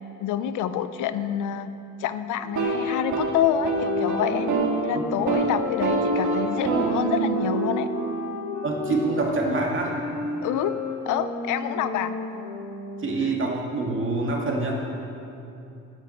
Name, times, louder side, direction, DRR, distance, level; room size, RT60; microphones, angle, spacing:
voice 1, 0.2-1.7 2.0-4.5 4.8-7.9 10.4-10.8 11.0-12.2, left 10 dB, 90° left, 12 dB, 0.6 m, -27 dB
sound 1, 2.4-4.8 5.1-5.5 5.8-9.7, right 3 dB, 70° right, 2.1 m, -27 dB
sound 2, 3.6-13.2, left 2 dB, 60° left, 2.1 m, -33 dB
voice 2, 8.6-9.9 13.0-14.8, right 3 dB, 40° right, -1 dB, 2.3 m, -26 dB
8.9 x 8.7 x 8.0 m, 2.8 s
cardioid pair, 90°, 30 cm